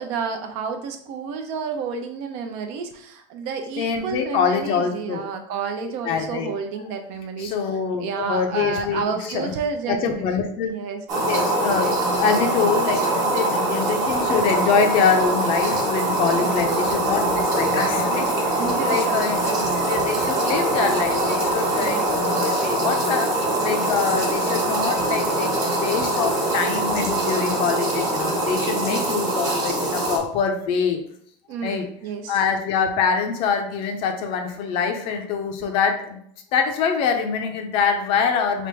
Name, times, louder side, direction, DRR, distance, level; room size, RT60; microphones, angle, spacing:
voice 1, 0.0-7.5 8.0-10.3 10.7-11.0 16.4-17.0 18.6-19.7 21.7-22.0 28.9-29.1 31.5-32.4, right 5 dB, 50° right, 5 dB, 0.6 m, -30 dB
voice 2, 3.8-5.2 6.1-6.5 7.4-9.0 9.3-9.5 9.9-10.7 11.3-31.0 31.6-31.9 32.3-36.2 36.5-38.7, left 6 dB, 40° left, 5 dB, 0.6 m, -24 dB
sound 1, 11.1-30.2, right 1 dB, 25° right, 1.2 m, -23 dB
3.4 x 2.5 x 4.4 m, 0.66 s
supercardioid pair, 165°, 14 cm